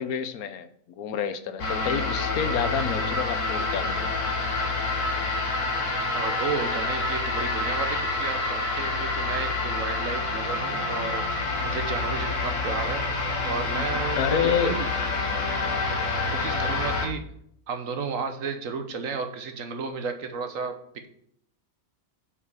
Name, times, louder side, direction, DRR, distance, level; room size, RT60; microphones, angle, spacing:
voice 1, 0.0-4.2 13.7-14.8 15.3-15.4, left 8 dB, 80° left, 12 dB, 1.2 m, -29 dB
sound 1, 1.6-17.1, left 3 dB, 60° left, 1.6 m, -27 dB
voice 2, 6.1-11.2 11.6-13.1 13.4-14.9 16.3-17.3 17.7-21.1, right 5 dB, 65° right, 7 dB, 1.3 m, -33 dB
7.1 x 5.2 x 7.1 m, 0.69 s
omnidirectional pair, 1.5 m